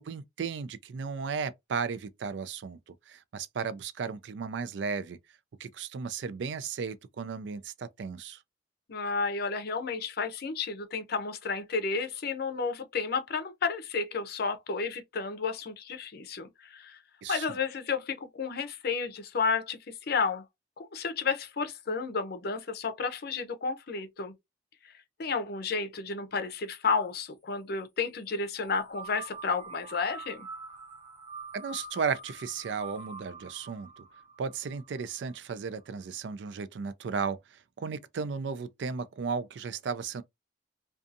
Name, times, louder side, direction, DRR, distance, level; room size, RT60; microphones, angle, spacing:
voice 1, 0.0-2.8 3.1-5.2 5.6-8.4 17.2-17.5 31.5-34.0 34.4-40.2, right 5 dB, 70° right, 0.4 m, -35 dB
voice 2, 8.9-17.0 17.3-19.8 20.1-20.4 20.8-24.3 25.2-30.5, left 4 dB, 60° left, 0.6 m, -32 dB
sound 1, 28.5-35.3, right 3 dB, 40° right, 1.5 m, -45 dB
2.6 x 2.3 x 2.5 m
head